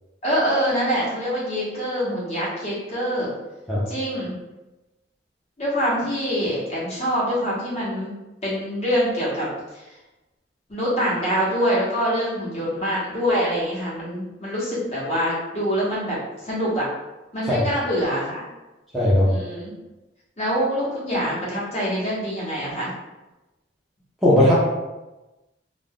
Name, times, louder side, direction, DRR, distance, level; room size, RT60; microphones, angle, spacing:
voice 1, 0.2-3.3 3.9-4.3 5.6-8.1 8.4-10.0 10.7-16.8 17.3-18.4 19.2-19.7 20.4-22.9, equal, 35° left, -7 dB, 1.0 m, -25 dB
voice 2, 18.9-19.3 24.2-24.5, left 1 dB, ahead, -10 dB, 0.6 m, -17 dB
2.5 x 2.2 x 3.5 m, 1.1 s
head